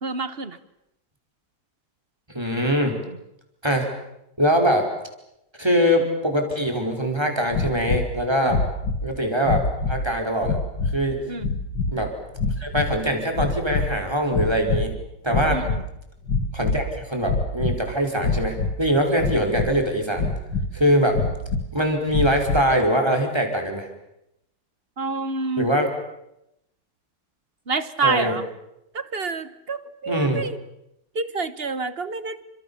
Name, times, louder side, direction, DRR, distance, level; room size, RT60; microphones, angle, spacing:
voice 1, 0.0-0.6 8.4-8.6 11.3-11.5 15.5-15.7 25.0-25.7 27.7-28.5 28.9-30.6 31.1-32.4, right 4 dB, 35° right, 13 dB, 1.2 m, -28 dB
voice 2, 2.3-3.0 3.6-3.9 4.4-4.9 5.6-8.6 9.0-10.6 10.9-11.2 11.9-12.1 12.6-14.9 15.2-15.6 16.5-20.3 20.7-21.2 21.7-23.9 25.6-25.9 28.0-28.4 30.1-30.4, equal, 10° right, 3 dB, 5.1 m, -22 dB
sound 1, 7.5-8.1 8.5-9.1 9.4-10.1 10.4-11.0 11.4-11.9 12.4-13.0 13.3-14.0 14.3-14.9 15.3-15.8 16.2-16.9 17.2-17.8 18.2-18.8 19.2-19.8 20.1-20.7 21.1-21.7 22.1-22.7, left 3 dB, 60° left, 2.6 m, -25 dB
29.5 x 26.0 x 7.2 m, 0.85 s
omnidirectional pair, 2.2 m